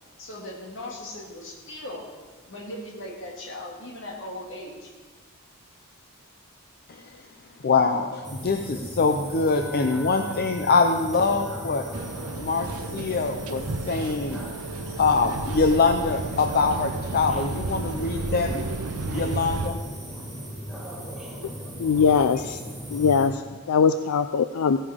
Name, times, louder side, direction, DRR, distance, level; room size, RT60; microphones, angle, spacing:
voice 1, 0.2-2.1 2.5-4.9, left 1 dB, 60° left, 0 dB, 2.3 m, -38 dB
voice 2, 7.6-11.9 12.4-14.4 15.0-18.6 19.1-19.8, left 4 dB, 45° left, 4 dB, 0.6 m, -24 dB
sound 1, 8.2-23.3, equal, ahead, 2.2 m, -37 dB
sound 2, 11.9-19.7, right 3 dB, 75° right, 0.6 m, -33 dB
voice 3, 21.8-22.6 22.9-23.3 23.7-24.8, left 6 dB, 90° left, 10 dB, 0.4 m, -21 dB
16.0 x 9.8 x 3.6 m, 1.4 s
head